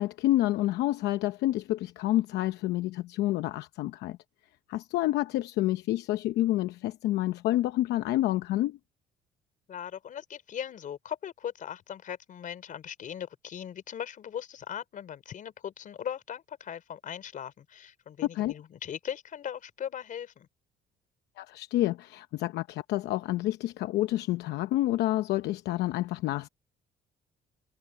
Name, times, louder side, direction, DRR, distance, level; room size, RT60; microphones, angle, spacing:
voice 1, 0.0-4.2 4.7-8.8 18.3-18.5 21.4-26.5, left 15 dB, 80° left, 0.8 m, -28 dB
voice 2, 9.7-20.5, left 9 dB, 50° left, 4.2 m, -39 dB
cardioid pair, 110°, 17 cm